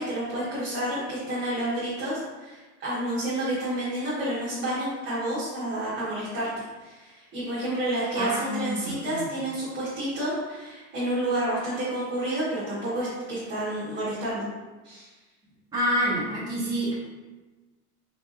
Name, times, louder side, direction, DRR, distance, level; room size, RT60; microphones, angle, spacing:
voice 1, 0.0-14.5 14.8-15.1, right 1 dB, 35° right, -10 dB, 1.4 m, -30 dB
voice 2, 8.2-9.3 15.7-16.9, equal, 10° right, -10 dB, 1.4 m, -28 dB
4.1 x 3.5 x 2.5 m, 1.2 s
supercardioid pair, 130°, 32 cm